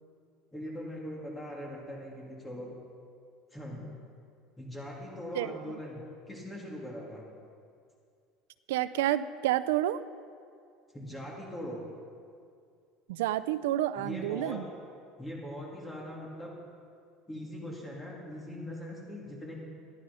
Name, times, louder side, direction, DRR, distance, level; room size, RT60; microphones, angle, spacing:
voice 1, 0.5-2.7 3.5-3.9 4.6-7.2 10.9-11.8 14.0-14.6 15.2-16.5 17.3-19.5, equal, 10° left, -3 dB, 2.9 m, -41 dB
voice 2, 8.7-10.0 13.1-14.6, right 13 dB, 90° right, 14 dB, 0.5 m, -29 dB
13.5 x 11.0 x 5.5 m, 2.3 s
supercardioid pair, 120°, 0 cm